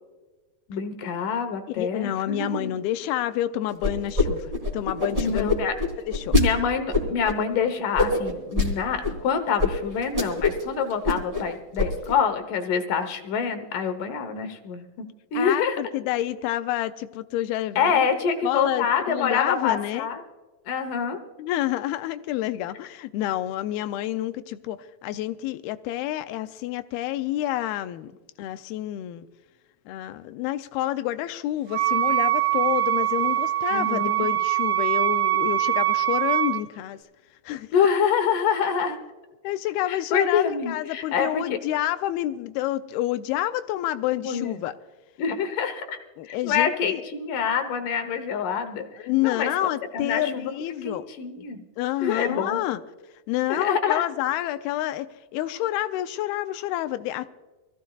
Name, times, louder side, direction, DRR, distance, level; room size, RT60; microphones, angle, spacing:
voice 1, 0.7-2.7 5.2-5.7 6.3-15.1 15.3-15.8 17.8-20.2 20.7-21.2 33.7-34.3 37.7-39.0 39.9-41.6 44.1-44.6 45.2-49.5 49.9-50.5 50.8-51.6 52.0-52.6 53.5-54.0, left 6 dB, 70° left, 2.4 m, -26 dB
voice 2, 1.8-5.5 6.1-6.4 15.4-18.1 18.4-20.1 21.4-28.1 28.4-29.3 29.9-37.0 37.5-37.7 39.4-44.8 46.2-47.0 49.0-51.1 51.8-52.8 53.3-57.3, left 14 dB, 90° left, 2.5 m, -28 dB
sound 1, 3.8-4.3 4.5-6.4 6.9-7.3 8.0-8.7 9.0-9.1 9.6-9.7 10.0-10.6 10.9-11.4 11.8-12.1, left 3 dB, 10° right, 1.9 m, -23 dB
Wind instrument woodwind instrument, 31.7-36.6, right 13 dB, 70° right, 2.9 m, -23 dB
24.5 x 15.5 x 2.4 m
omnidirectional pair, 4.4 m